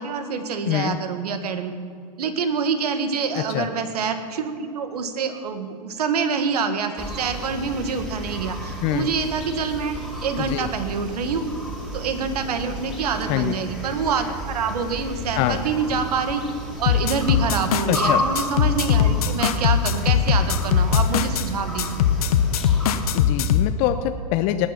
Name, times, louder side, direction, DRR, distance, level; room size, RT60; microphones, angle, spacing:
voice 1, 0.0-1.8 2.2-9.9 10.2-11.4 11.9-16.4 16.8-22.1, right 5 dB, 75° right, 8 dB, 1.7 m, -26 dB
voice 2, 0.7-1.0 3.3-3.7 8.8-9.1 10.4-10.7 13.3-13.6 15.4-15.6 17.9-18.2 23.1-24.7, left 14 dB, 45° left, 8 dB, 0.7 m, -24 dB
sound 1, 7.0-23.1, equal, 5° right, 2.8 m, -32 dB
sound 2, 16.9-18.0 18.4-21.5 21.8-23.7, left 8 dB, 70° left, 1.0 m, -20 dB
19.0 x 10.0 x 5.9 m, 2.4 s
hypercardioid pair, 115°, 20 cm